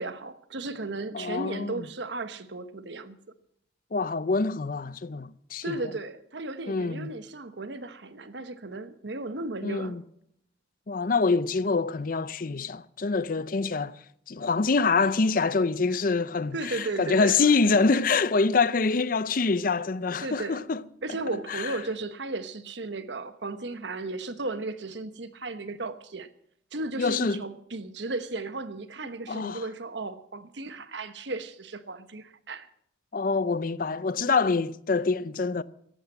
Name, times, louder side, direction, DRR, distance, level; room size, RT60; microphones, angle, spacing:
voice 1, 0.0-3.2 5.6-10.0 16.5-17.5 20.2-20.6 21.0-26.3 26.7-32.7, right 2 dB, 70° right, 1.1 m, -35 dB
voice 2, 1.1-1.8 3.9-5.8 6.7-7.1 9.6-10.0 10.9-14.0 14.3-20.8 21.5-21.8 27.0-27.4 29.3-29.6 33.1-35.6, left 4 dB, 45° left, 0.5 m, -25 dB
13.5 x 11.5 x 7.6 m
head